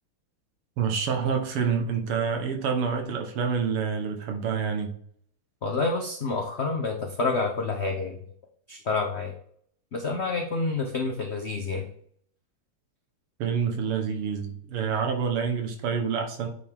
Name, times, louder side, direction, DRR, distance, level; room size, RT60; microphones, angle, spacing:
voice 1, 0.8-4.9 13.4-16.5, right 6 dB, 85° right, 4 dB, 2.1 m, -27 dB
voice 2, 5.6-8.2 8.7-9.3 9.9-11.9, left 3 dB, 80° left, 2 dB, 0.5 m, -28 dB
8.8 x 4.7 x 3.6 m, 0.62 s
omnidirectional pair, 2.4 m